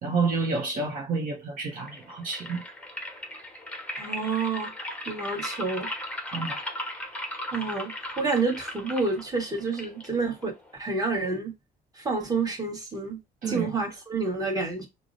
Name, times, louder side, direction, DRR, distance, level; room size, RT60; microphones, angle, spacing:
voice 1, 0.0-2.6 6.3-6.6 13.4-13.7, right 4 dB, 50° right, 0.8 m, -29 dB
sound 1, 1.7-10.8, left 1 dB, 5° left, 0.7 m, -37 dB
voice 2, 4.0-4.7 5.1-5.9 7.5-10.5 10.8-11.5 11.9-13.2 13.5-14.8, right 4 dB, 20° right, 1.2 m, -29 dB
4.6 x 2.0 x 2.6 m
cardioid pair, 110°, 17 cm